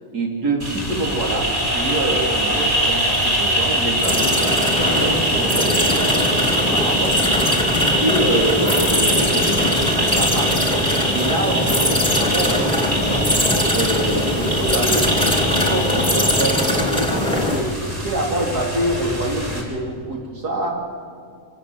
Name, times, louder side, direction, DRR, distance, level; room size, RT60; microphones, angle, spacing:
voice 1, 0.1-7.2 8.0-9.6 9.9-13.2 13.7-17.7 18.0-20.7, right 2 dB, 90° right, -1 dB, 3.5 m, -25 dB
sound 1, 0.6-19.6, equal, 30° right, 4.3 m, -23 dB
sound 2, 4.0-17.6, left 1 dB, 5° left, 2.7 m, -21 dB
25.5 x 14.0 x 8.0 m, 2.2 s
omnidirectional pair, 1.6 m